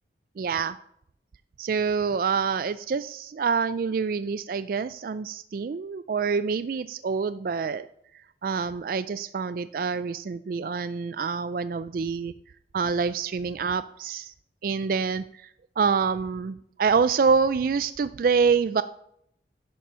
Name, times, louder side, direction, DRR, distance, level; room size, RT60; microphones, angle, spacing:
voice 1, 0.4-0.8 1.6-7.8 8.4-12.3 12.7-14.3 14.6-15.4 15.8-18.8, right 5 dB, 50° right, 13 dB, 0.3 m, -26 dB
11.0 x 7.1 x 5.6 m, 0.72 s
head